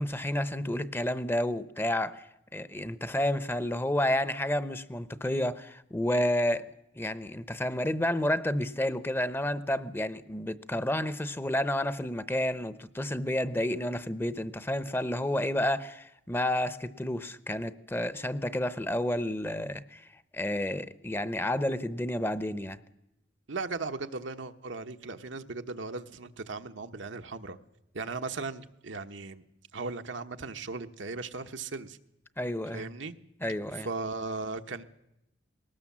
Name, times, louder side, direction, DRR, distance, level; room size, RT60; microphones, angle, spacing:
voice 1, 0.0-2.3 2.5-6.7 7.0-20.0 20.3-22.8 32.4-32.9 33.4-33.9, left 1 dB, 10° left, 0.7 m, -30 dB
voice 2, 23.5-27.6 27.9-29.4 29.7-32.0 32.7-33.1 33.8-34.8, right 3 dB, 85° right, 1.1 m, -37 dB
20.5 x 18.5 x 7.3 m
head